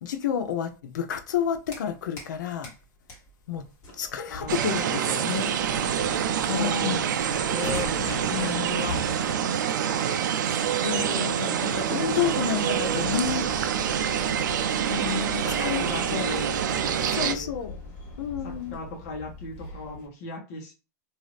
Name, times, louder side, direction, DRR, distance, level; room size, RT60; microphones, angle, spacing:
voice 1, 0.0-2.7 3.5-3.6 4.0-5.5 6.5-7.1 8.3-8.7 10.7-13.5 14.9-15.8 16.1-16.3 17.1-17.7 18.2-18.8, left 8 dB, 85° left, 0.6 m, -30 dB
sound 1, 1.3-2.4 2.6-20.1, left 3 dB, 30° left, 1.4 m, -41 dB
voice 2, 4.3-5.0 6.5-7.9 8.2-9.0 11.9-12.4 15.4-16.6 16.9-17.5 18.4-20.8, left 2 dB, 50° left, 1.1 m, -37 dB
sound 2, 4.5-17.3, right 8 dB, 90° right, 0.4 m, -26 dB
2.7 x 2.4 x 3.2 m
supercardioid pair, 145°, 10 cm